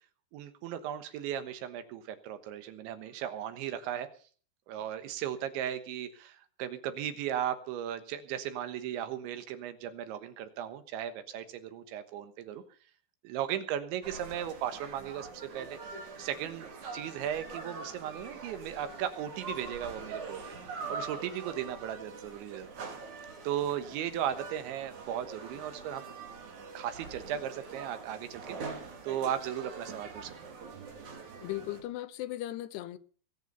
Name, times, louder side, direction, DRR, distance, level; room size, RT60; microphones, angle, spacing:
voice 1, 0.3-4.1 4.7-12.6 13.2-15.8 16.2-20.4 20.7-22.9 23.4-26.1 26.8-30.4, right 10 dB, 80° right, 3.6 m, -36 dB
sound 1, 14.0-31.8, right 4 dB, 45° right, 3.8 m, -44 dB
voice 2, 31.4-33.0, left 14 dB, 75° left, 2.6 m, -37 dB
21.5 x 8.1 x 6.8 m
omnidirectional pair, 5.3 m